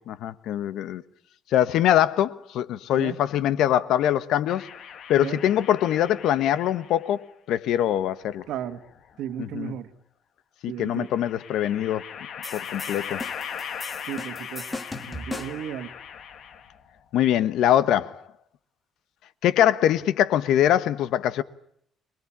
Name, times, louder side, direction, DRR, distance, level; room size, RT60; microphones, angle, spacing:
voice 1, 0.1-1.0 1.5-4.7 5.1-8.4 9.4-9.7 10.6-12.0 12.5-13.2 17.1-18.2 19.4-21.4, left 11 dB, 80° left, 1.2 m, -23 dB
sound 1, 4.5-7.1 8.3-9.3 10.9-16.9, left 8 dB, 55° left, 2.1 m, -39 dB
voice 2, 8.5-8.8 9.2-9.9 10.7-11.1 14.1-14.8 15.1-15.9, right 10 dB, 85° right, 1.8 m, -34 dB
sound 2, 12.4-15.7, left 2 dB, 15° left, 1.8 m, -38 dB
26.5 x 20.5 x 8.7 m
cardioid pair, 160°, 0 cm